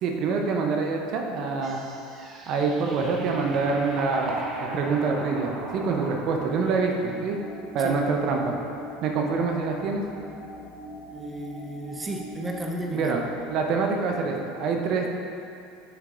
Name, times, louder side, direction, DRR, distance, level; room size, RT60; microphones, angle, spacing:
voice 1, 0.0-1.8 2.5-4.3 4.6-7.4 7.7-8.6 9.0-10.0 12.9-15.1, right 4 dB, 55° right, 2 dB, 0.7 m, -26 dB
sound 1, 1.6-7.2, right 2 dB, 35° right, 1.0 m, -39 dB
sound 2, 3.0-14.0, equal, ahead, 1.2 m, -42 dB
voice 2, 11.1-13.2, right 1 dB, 20° right, 1 dB, 0.7 m, -34 dB
7.3 x 6.5 x 2.6 m, 2.7 s
hypercardioid pair, 75°, 0 cm